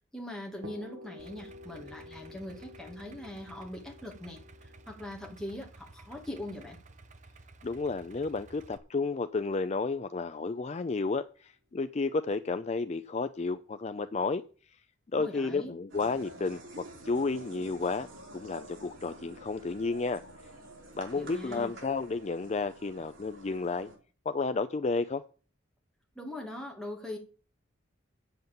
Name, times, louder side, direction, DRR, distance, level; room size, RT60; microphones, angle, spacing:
voice 1, 0.1-6.8 15.2-15.7 21.2-21.7 26.1-27.2, left 1 dB, ahead, 2.6 m, -41 dB
sound 1, 0.6-8.4, left 2 dB, 65° right, 1.3 m, -51 dB
Idling, 1.2-8.8, right 2 dB, 40° right, 0.8 m, -54 dB
voice 2, 7.6-14.8 15.1-18.1 18.3-20.2 20.9-23.9 24.3-25.2, left 3 dB, 35° left, 0.4 m, -32 dB
sound 2, 15.9-24.0, right 1 dB, 85° right, 3.9 m, -49 dB
8.0 x 7.8 x 7.1 m
head